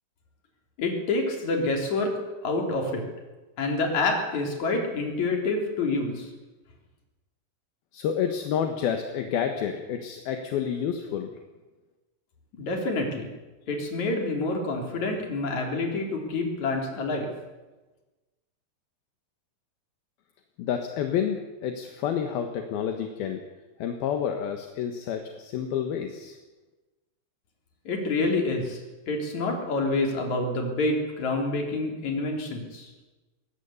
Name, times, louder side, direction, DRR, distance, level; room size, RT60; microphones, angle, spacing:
voice 1, 0.8-2.1 2.4-3.0 3.6-6.3 12.5-13.3 13.7-17.3 27.8-28.8 29.1-32.9, left 2 dB, 45° left, 2 dB, 4.6 m, -27 dB
voice 2, 7.9-11.3 20.6-23.4 23.8-26.4, left 8 dB, 70° left, 5 dB, 3.1 m, -29 dB
22.0 x 17.5 x 8.4 m, 1.2 s
omnidirectional pair, 4.9 m